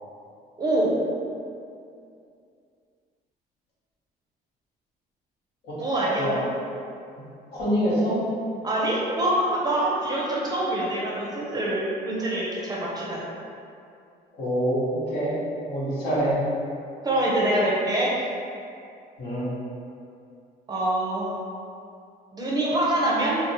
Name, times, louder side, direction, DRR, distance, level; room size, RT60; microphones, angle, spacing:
voice 1, 0.6-0.9 5.8-6.4 8.6-13.2 17.0-18.1 20.7-21.3 22.3-23.4, right 1 dB, 25° right, -5 dB, 0.5 m, -25 dB
voice 2, 7.5-8.2 14.4-15.3 15.7-16.5 19.2-19.5, equal, 70° left, -9 dB, 1.0 m, -25 dB
2.8 x 2.0 x 2.7 m, 2.5 s
cardioid pair, 110°, 17 cm